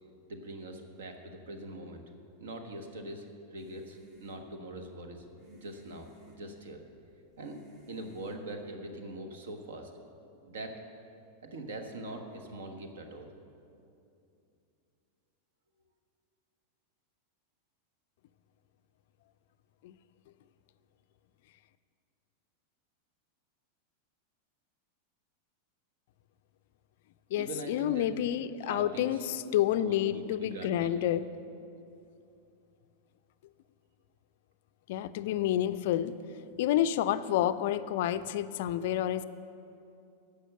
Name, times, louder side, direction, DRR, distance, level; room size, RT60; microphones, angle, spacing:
voice 1, 0.3-2.0 2.4-3.3 3.5-5.2 5.5-6.8 7.4-7.6 7.9-9.9 10.4-10.8 11.4-13.3 27.4-28.1 28.6-29.3 29.8-30.9, right 2 dB, 60° right, 5 dB, 1.2 m, -42 dB
sound 1, 3.6-9.0, equal, 40° right, 1.8 m, -59 dB
voice 2, 27.3-31.3 34.9-36.1 36.6-39.2, left 12 dB, 50° left, 13 dB, 0.4 m, -29 dB
11.5 x 6.9 x 7.7 m, 2.6 s
figure-of-eight pair, 90°, 0 cm